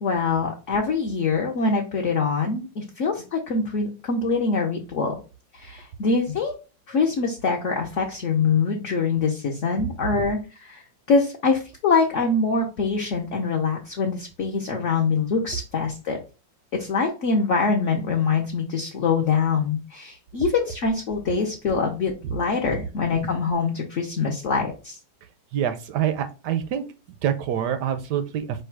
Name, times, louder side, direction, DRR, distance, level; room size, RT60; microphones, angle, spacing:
voice 1, 0.0-5.1 5.5-6.5 6.9-10.8 11.1-16.2 16.7-25.0, left 4 dB, 60° left, 0 dB, 0.8 m, -24 dB
voice 2, 25.5-26.8 27.2-28.6, right 9 dB, 75° right, 10 dB, 1.0 m, -26 dB
4.9 x 2.3 x 4.5 m, 0.32 s
omnidirectional pair, 2.1 m